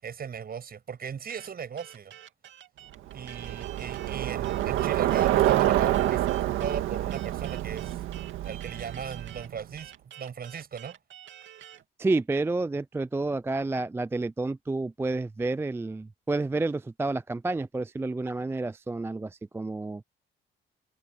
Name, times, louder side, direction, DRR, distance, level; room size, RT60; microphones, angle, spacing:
voice 1, 0.0-2.1 3.1-6.2 6.6-8.0 8.4-11.0, right 7 dB, 50° right, 7.8 m, -38 dB
sound 1, 1.3-11.8, right 11 dB, 70° right, 2.9 m, -48 dB
Bicycle, 3.1-9.6, right 13 dB, 90° right, 1.8 m, -27 dB
voice 2, 12.0-20.0, right 2 dB, 10° right, 0.3 m, -30 dB
cardioid pair, 90°, 20 cm